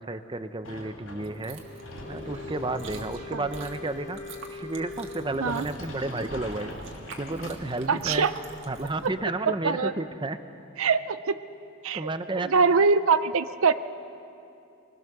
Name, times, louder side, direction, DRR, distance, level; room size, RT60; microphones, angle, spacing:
voice 1, 0.0-1.6 2.1-4.2 4.5-6.7 7.2-8.3 8.7-10.4 11.9-12.5, right 2 dB, 25° right, 10 dB, 0.7 m, -32 dB
Sliding door, 0.6-8.1, left 1 dB, 90° left, 4.0 m, -44 dB
Chewing mastication, 1.2-9.1, right 3 dB, 60° right, 2.0 m, -45 dB
Wind instrument woodwind instrument, 1.5-5.9, left 3 dB, 35° left, 1.1 m, -42 dB
voice 2, 7.9-8.3 9.0-9.1 9.6-9.9 10.8-11.4 11.8-12.1 12.3-13.7, right 5 dB, 75° right, 12 dB, 0.6 m, -23 dB
23.5 x 21.0 x 6.7 m, 2.7 s
head